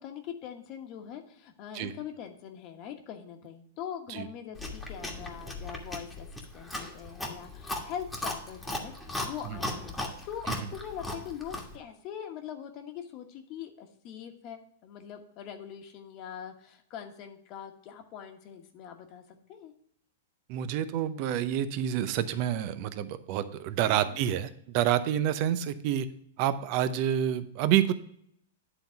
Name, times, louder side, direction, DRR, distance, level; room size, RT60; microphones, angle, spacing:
voice 1, 0.0-10.0 10.3-19.7 23.9-24.2, left 9 dB, 40° left, 5 dB, 1.2 m, -42 dB
Chewing mastication, 4.6-11.8, left 1 dB, 5° left, 1.5 m, -37 dB
voice 2, 20.5-26.1 26.4-27.9, right 10 dB, 45° right, 13 dB, 0.6 m, -28 dB
9.8 x 3.9 x 5.8 m, 0.68 s
hypercardioid pair, 125°, 0 cm